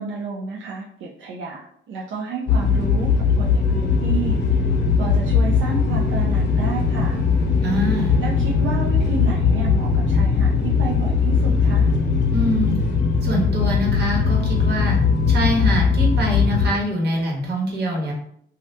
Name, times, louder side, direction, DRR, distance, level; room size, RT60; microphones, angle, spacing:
voice 1, 0.0-4.6 5.0-7.2 8.2-11.9, right 4 dB, 75° right, -3 dB, 0.6 m, -31 dB
sound 1, 2.5-16.7, left 5 dB, 60° left, 0.7 m, -19 dB
voice 2, 7.6-8.2 12.3-12.8 13.2-15.0 15.3-18.1, equal, 55° right, -2 dB, 1.2 m, -24 dB
2.7 x 2.4 x 3.2 m, 0.66 s
cardioid pair, 90°, 20 cm